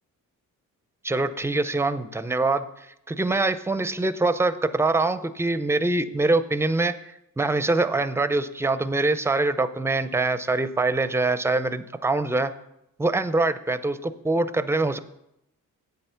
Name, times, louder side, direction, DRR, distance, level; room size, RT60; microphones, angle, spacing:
voice 1, 1.0-2.6 3.1-6.9 7.4-12.5 13.0-15.0, right 2 dB, 10° right, 13 dB, 0.4 m, -24 dB
8.6 x 7.9 x 5.6 m, 0.83 s
cardioid pair, 115°, 33 cm